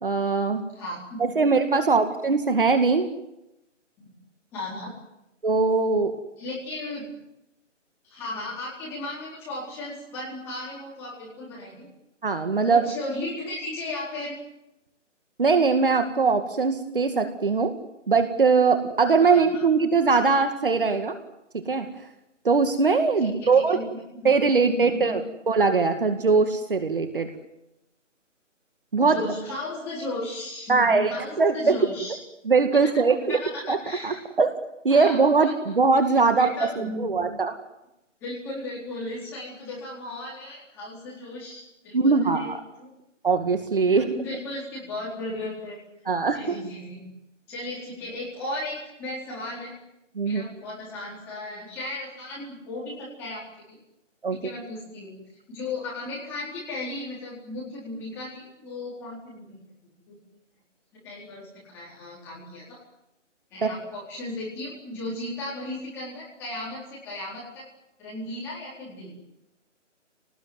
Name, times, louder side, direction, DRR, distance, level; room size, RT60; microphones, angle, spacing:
voice 1, 0.0-0.6 1.2-3.1 5.4-6.2 12.2-12.9 15.4-17.7 18.1-21.1 21.5-21.9 22.4-23.8 24.2-27.3 28.9-29.2 30.7-31.8 32.4-33.4 33.7-33.8 34.0-34.6 34.8-36.5 36.8-37.5 41.9-42.6 43.2-44.1 46.1-46.7 50.2-50.4 54.2-54.4 63.6-63.7, right 4 dB, 45° right, 7 dB, 2.1 m, -21 dB
voice 2, 0.7-1.2 1.8-2.1 4.0-4.1 4.5-4.9 6.4-7.0 8.0-11.9 12.7-14.3 19.3-19.6 23.2-23.8 24.2-25.2 29.0-32.2 32.9-33.0 33.3-34.2 34.9-35.5 36.4-37.2 38.2-42.9 43.9-45.8 46.3-47.1 47.5-49.7 50.2-53.4 53.7-53.8 54.3-55.2 55.5-59.6 60.1-60.2 60.9-61.5 61.7-62.8 63.5-67.6 68.0-69.1, left 2 dB, 5° left, -6 dB, 4.2 m, -36 dB
26.5 x 19.5 x 9.5 m, 0.91 s
hypercardioid pair, 180°, 37 cm